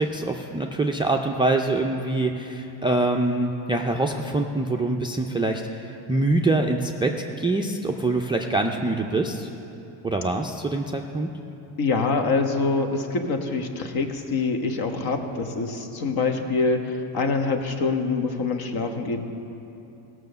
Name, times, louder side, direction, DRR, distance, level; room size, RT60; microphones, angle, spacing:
voice 1, 0.0-9.5 10.0-11.3, right 2 dB, 10° right, 3 dB, 0.3 m, -24 dB
voice 2, 11.8-19.2, left 4 dB, 50° left, 5 dB, 1.3 m, -25 dB
16.0 x 6.3 x 6.7 m, 2.8 s
cardioid pair, 115°, 46 cm